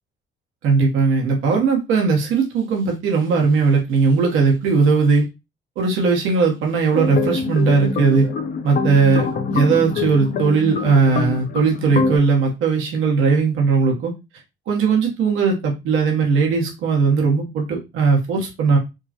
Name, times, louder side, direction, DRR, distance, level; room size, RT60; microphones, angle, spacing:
voice 1, 0.6-5.3 5.8-8.3 8.6-14.1 14.7-18.8, right 4 dB, 90° right, 1 dB, 1.1 m, -18 dB
sound 1, 6.9-12.2, left 4 dB, 45° left, 0.6 m, -25 dB
5.0 x 2.1 x 2.8 m, 0.23 s
cardioid pair, 90°, 20 cm